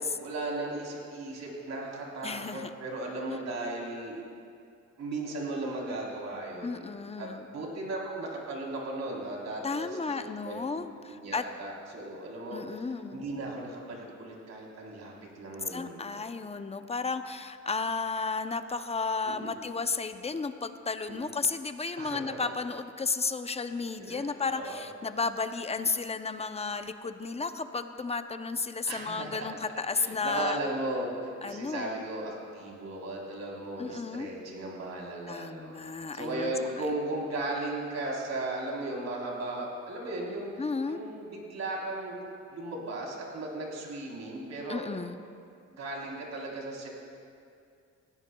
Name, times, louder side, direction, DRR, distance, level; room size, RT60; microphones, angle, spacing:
voice 1, 0.0-4.2 5.0-6.9 7.2-16.2 19.2-19.6 21.1-21.3 22.0-22.4 24.0-24.8 28.9-29.5 29.9-40.5 40.8-42.2 42.5-44.8 45.7-46.9, right 2 dB, 60° right, -2 dB, 3.7 m, -36 dB
voice 2, 2.2-2.7 6.6-7.4 9.6-11.4 12.5-13.2 15.7-30.6 31.4-32.0 33.8-34.3 35.3-36.5 40.6-41.0 44.7-45.2, left 4 dB, 20° left, 9 dB, 0.6 m, -33 dB
19.5 x 15.5 x 2.3 m, 2.4 s
cardioid pair, 90°, 30 cm